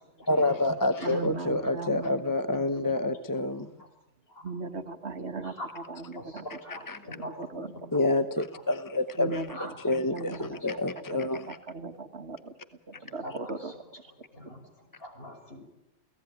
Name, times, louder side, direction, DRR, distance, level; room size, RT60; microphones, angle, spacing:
voice 1, 0.3-3.7 6.7-7.0 7.9-11.6, left 2 dB, 20° left, 9 dB, 0.9 m, -28 dB
voice 2, 1.0-2.1 2.8-2.9 4.4-6.6 7.4-7.7 9.2-10.8 11.5-12.5 13.0-13.7 14.4-14.5, right 3 dB, 70° right, 8 dB, 1.9 m, -38 dB
voice 3, 6.2-6.8 7.2-7.3 9.5-9.7 13.2-13.5 14.3-14.6 15.0-15.6, equal, 55° left, 3 dB, 6.2 m, -41 dB
29.5 x 17.5 x 9.5 m, 0.93 s
omnidirectional pair, 1.2 m